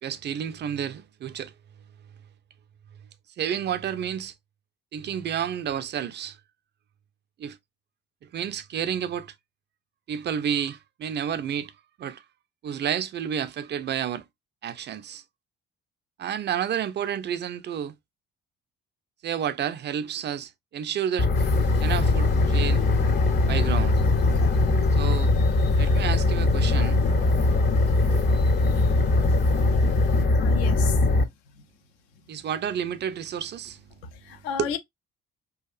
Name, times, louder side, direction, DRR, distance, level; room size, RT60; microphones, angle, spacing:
voice 1, 0.0-1.5 2.9-3.1 3.4-4.3 4.9-6.4 7.4-7.6 8.3-9.3 10.1-11.7 12.0-12.2 12.6-14.2 14.6-15.2 16.2-17.9 19.2-21.3 21.8-22.8 23.5-24.0 24.9-25.3 25.8-28.3 32.3-33.8 34.6-34.7, right 9 dB, 35° right, 0.4 m, -30 dB
sound 1, 21.2-31.2, left 3 dB, 30° left, 0.6 m, -21 dB
Thunder, 21.3-30.2, left 1 dB, 50° left, 1.0 m, -36 dB
voice 2, 30.3-31.6 32.1-32.2 34.0-34.8, left 8 dB, 70° left, 0.6 m, -34 dB
2.7 x 2.3 x 2.3 m
figure-of-eight pair, 45°, 33 cm